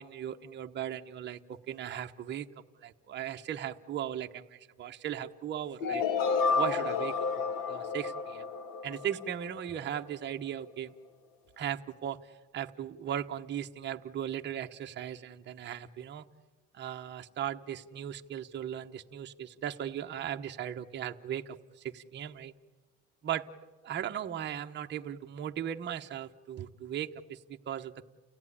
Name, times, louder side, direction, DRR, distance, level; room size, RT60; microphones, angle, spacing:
voice 1, 0.0-2.5 2.8-6.0 6.5-8.5 8.8-10.9 11.6-16.2 16.7-22.5 23.2-23.4 23.8-28.0, right 10 dB, 30° right, 4 dB, 1.0 m, -37 dB
sound 1, 5.8-9.7, left 5 dB, 65° left, 1.6 m, -31 dB
30.0 x 17.0 x 9.9 m, 1.3 s
cardioid pair, 150°, 37 cm